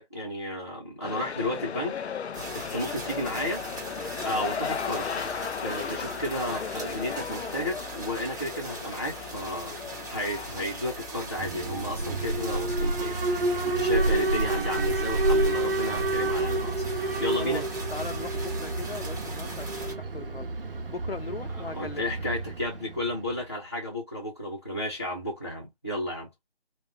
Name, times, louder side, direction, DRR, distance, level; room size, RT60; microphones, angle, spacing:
voice 1, 0.0-2.0 2.7-3.6 4.2-5.1 5.6-13.2 13.6-16.9 17.2-17.6 21.7-26.3, left 1 dB, 15° left, 0.9 m, -33 dB
sound 1, 1.0-12.0 12.4-12.5, left 6 dB, 85° left, 0.6 m, -36 dB
sound 2, 2.3-19.9, right 1 dB, 15° right, 1.3 m, -40 dB
Alarm, 11.4-23.4, right 2 dB, 60° right, 1.0 m, -29 dB
voice 2, 17.4-20.5 20.9-22.0, left 4 dB, 65° left, 0.9 m, -38 dB
4.8 x 2.5 x 3.6 m
figure-of-eight pair, 175°, 32 cm